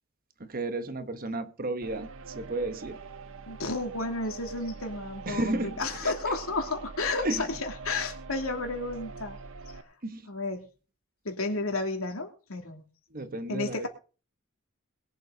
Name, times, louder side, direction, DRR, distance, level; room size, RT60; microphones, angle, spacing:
voice 1, 0.5-2.1 2.3-3.0 5.3-5.7 6.0-6.1 7.2-7.4 10.0-10.2 13.1-13.9, right 2 dB, 40° right, 1.1 m, -32 dB
sound 1, 1.8-9.8, right 4 dB, 65° right, 0.9 m, -44 dB
voice 2, 3.5-9.4 9.7-9.8 10.3-10.7 11.2-12.8 13.5-13.9, left 3 dB, 75° left, 2.9 m, -32 dB
22.0 x 7.8 x 4.0 m
head